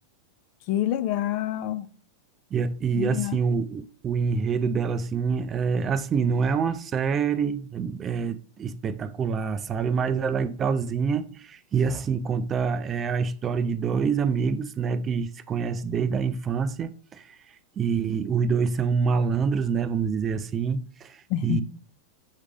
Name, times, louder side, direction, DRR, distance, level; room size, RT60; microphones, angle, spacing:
voice 1, 0.7-1.9 3.0-3.4 21.3-21.6, left 12 dB, 45° left, 0.5 m, -27 dB
voice 2, 2.5-21.6, right 6 dB, 25° right, 0.5 m, -26 dB
7.3 x 3.2 x 5.0 m
figure-of-eight pair, 90°, 0 cm